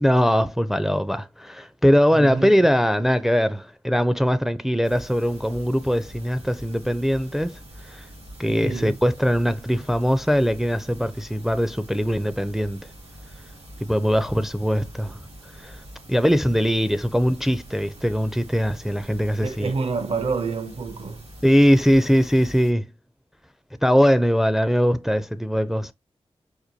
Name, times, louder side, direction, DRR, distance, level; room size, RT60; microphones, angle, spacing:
voice 1, 0.0-7.6 7.9-8.1 8.4-12.8 13.8-15.2 15.6-15.8 16.1-19.7 21.4-22.8 23.8-25.9, equal, 5° right, 0.4 m, -21 dB
voice 2, 2.1-2.5 8.6-8.9 19.4-21.3, right 4 dB, 60° right, 0.6 m, -27 dB
sound 1, 4.8-22.7, right 1 dB, 85° right, 2.0 m, -44 dB
4.4 x 2.3 x 2.6 m
cardioid pair, 45°, 11 cm